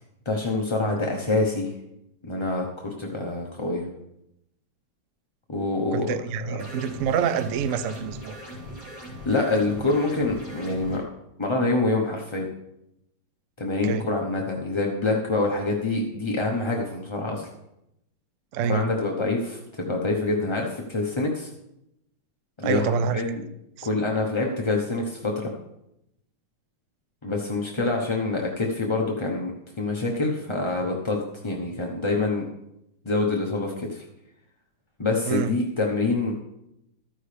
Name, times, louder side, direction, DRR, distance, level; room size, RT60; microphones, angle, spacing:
voice 1, 0.2-1.7 2.2-3.8 5.5-6.1 6.4-6.6 9.2-11.0 11.4-12.5 13.6-17.5 18.6-21.5 22.6-23.4 23.8-25.5 27.2-29.5 29.8-32.5 33.0-34.0 35.0-36.3, left 3 dB, 25° left, 0.6 m, -26 dB
voice 2, 5.9-8.4 13.8-14.0 18.5-18.9 22.6-23.2 23.8-23.9 35.2-35.5, right 6 dB, 75° right, 0.7 m, -26 dB
sound 1, 6.6-11.0, equal, 10° left, 4.1 m, -40 dB
14.0 x 10.0 x 3.4 m
omnidirectional pair, 2.1 m